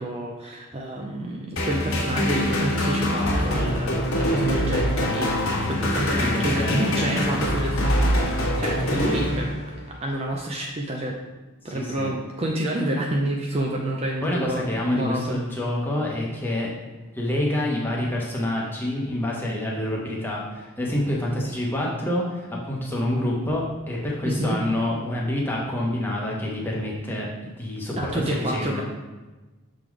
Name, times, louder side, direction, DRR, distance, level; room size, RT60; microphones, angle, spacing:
voice 1, 0.0-9.5 9.9-11.2 11.6-15.4 24.2-24.6 28.0-28.8, right 1 dB, 30° right, 0 dB, 0.5 m, -28 dB
sound 1, 1.6-9.9, left 1 dB, 75° left, 1.5 m, -24 dB
voice 2, 6.2-7.2 11.7-12.1 14.2-16.7 17.1-27.3 27.6-28.8, left 1 dB, 10° left, -3 dB, 1.1 m, -27 dB
6.7 x 3.9 x 4.7 m, 1.2 s
head